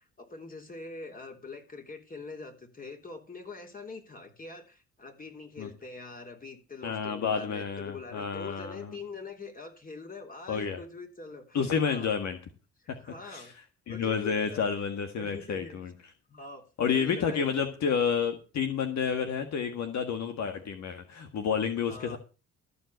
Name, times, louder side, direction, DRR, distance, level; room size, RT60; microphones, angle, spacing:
voice 1, 0.0-12.1 12.8-13.5 13.9-14.7 15.2-15.8 16.3-17.5 21.9-22.2, left 3 dB, 30° left, 4 dB, 3.6 m, -44 dB
voice 2, 6.8-9.0 10.5-10.8 11.5-12.4 12.9-13.4 13.9-15.9 16.8-22.2, left 6 dB, 65° left, 6 dB, 1.7 m, -30 dB
13.5 x 5.5 x 8.0 m, 0.34 s
cardioid pair, 90°, 30 cm